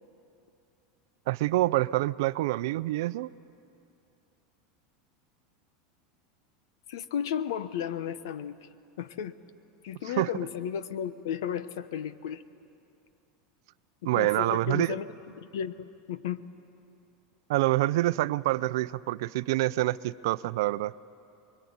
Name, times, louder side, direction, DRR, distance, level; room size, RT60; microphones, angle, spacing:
voice 1, 1.3-3.3 10.2-10.3 14.0-14.9 17.5-20.9, right 17 dB, 70° right, 16 dB, 0.5 m, -26 dB
voice 2, 6.9-8.7 9.0-9.4 9.8-12.4 14.0-15.1 15.4-16.4, left 9 dB, 85° left, 14 dB, 1.1 m, -34 dB
27.5 x 22.5 x 9.6 m, 2.7 s
supercardioid pair, 155°, 2 cm